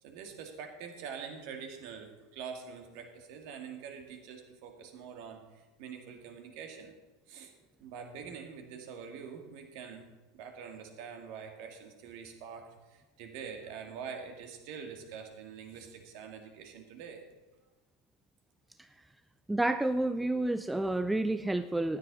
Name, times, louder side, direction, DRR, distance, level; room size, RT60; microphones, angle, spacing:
voice 1, 0.0-6.9 7.3-7.5 7.8-10.0 10.3-17.2, right 6 dB, 50° right, 4 dB, 1.9 m, -45 dB
voice 2, 19.5-22.0, right 2 dB, 5° right, 11 dB, 0.4 m, -29 dB
15.0 x 10.5 x 4.0 m, 1.2 s
figure-of-eight pair, 75°, 0 cm